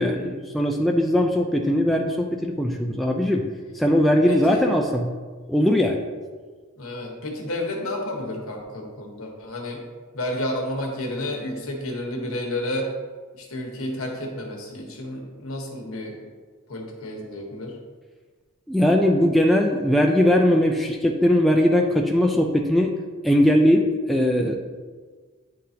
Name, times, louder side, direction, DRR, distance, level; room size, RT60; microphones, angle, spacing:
voice 1, 0.0-3.5 3.7-5.1 5.5-6.0 18.7-22.9 23.2-24.6, left 1 dB, ahead, 0 dB, 0.3 m, -20 dB
voice 2, 4.3-4.6 6.8-9.8 10.1-12.9 13.3-16.2 16.7-17.8, left 1 dB, 65° left, 0 dB, 1.2 m, -31 dB
9.6 x 3.8 x 2.8 m, 1.5 s
head